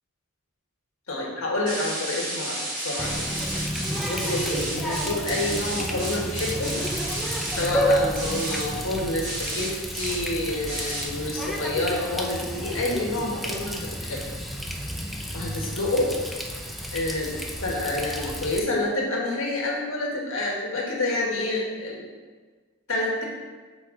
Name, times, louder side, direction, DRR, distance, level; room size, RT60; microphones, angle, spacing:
voice 1, 1.1-3.2 4.0-6.7 7.6-14.3 15.3-16.1 16.9-17.3 17.6-22.1 22.9-23.2, left 2 dB, 70° left, -2 dB, 1.3 m, -28 dB
sound 1, 1.7-7.6 8.1-8.6 9.2-9.7 9.9-10.1 10.7-11.0, right 1 dB, 70° right, 1.8 m, -32 dB
Water tap faucet, 3.0-18.6, equal, ahead, 0.3 m, -31 dB
6.8 x 4.2 x 3.7 m, 1.4 s
head